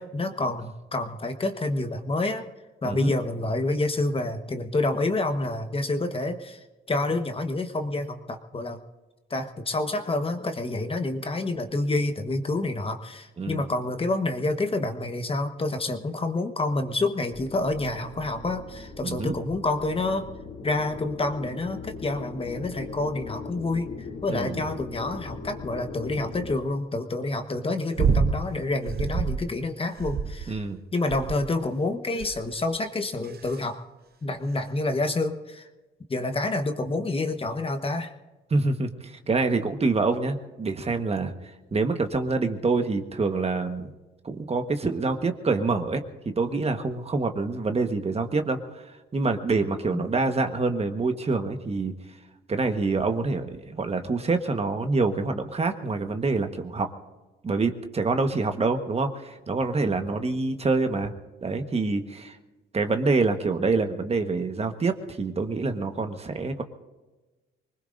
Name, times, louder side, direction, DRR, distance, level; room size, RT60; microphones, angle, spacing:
voice 1, 0.0-2.4 2.8-6.6 6.9-8.8 9.3-20.3 20.6-23.9 24.2-30.6 30.9-33.8 34.2-35.7 36.1-38.1 49.9-50.1, left 2 dB, 30° left, 6 dB, 1.3 m, -28 dB
sound 1, 17.3-26.6, left 4 dB, 60° left, 2.6 m, -40 dB
voice 2, 19.0-19.3 24.3-24.6 30.5-30.8 38.5-41.3 41.7-43.9 44.2-51.9 52.5-56.9 57.4-61.1 61.4-62.4 62.7-66.6, right 3 dB, 30° right, 6 dB, 1.3 m, -26 dB
sound 2, 28.0-28.4 28.8-29.4 30.0-30.6 31.1-31.6 32.2-32.5 33.2-33.6 34.5-34.6, right 6 dB, 50° right, 0.9 m, -26 dB
25.0 x 20.0 x 2.6 m, 1.2 s
cardioid pair, 90°, 20 cm